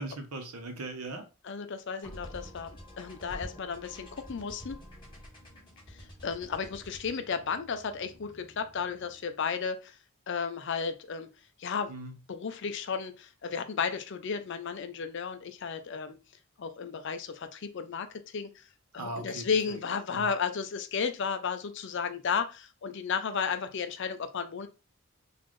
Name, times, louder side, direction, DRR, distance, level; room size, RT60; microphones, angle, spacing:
voice 1, 0.0-1.2 11.9-12.1 19.0-19.8 20.1-20.3, right 2 dB, 80° right, 5 dB, 0.9 m, -39 dB
voice 2, 1.4-4.8 5.9-10.0 10.3-11.3 11.6-11.9 12.3-16.2 16.6-18.6 18.9-24.7, left 6 dB, 55° left, 9 dB, 0.4 m, -33 dB
sound 1, 2.0-9.4, equal, 20° left, 1.7 m, -48 dB
4.0 x 2.6 x 3.1 m, 0.31 s
head